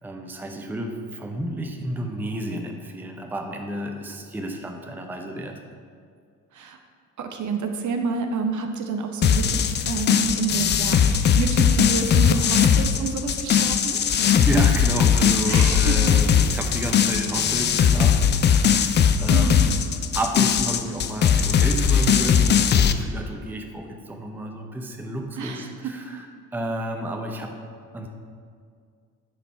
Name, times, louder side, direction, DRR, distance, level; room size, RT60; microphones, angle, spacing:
voice 1, 0.0-5.6 14.4-19.0 19.2-19.9 20.1-27.6 27.9-28.1, right 1 dB, 5° right, 3 dB, 0.7 m, -31 dB
voice 2, 7.2-14.0 15.5-16.1 19.3-19.5 25.4-25.7, right 5 dB, 40° right, 4 dB, 0.9 m, -29 dB
sound 1, 9.2-22.9, left 7 dB, 25° left, 0.4 m, -19 dB
9.2 x 4.0 x 4.7 m, 2.2 s
figure-of-eight pair, 50°, 45 cm